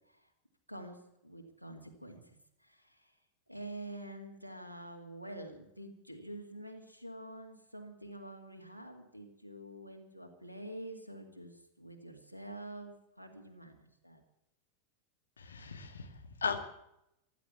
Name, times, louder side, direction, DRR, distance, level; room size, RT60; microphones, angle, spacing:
voice 1, 0.7-3.1 3.5-14.2, right 1 dB, 90° right, 4 dB, 2.2 m, -47 dB
voice 2, 15.4-16.6, left 5 dB, 70° left, 7 dB, 1.9 m, -37 dB
15.5 x 13.0 x 7.1 m, 0.80 s
figure-of-eight pair, 90°, 0 cm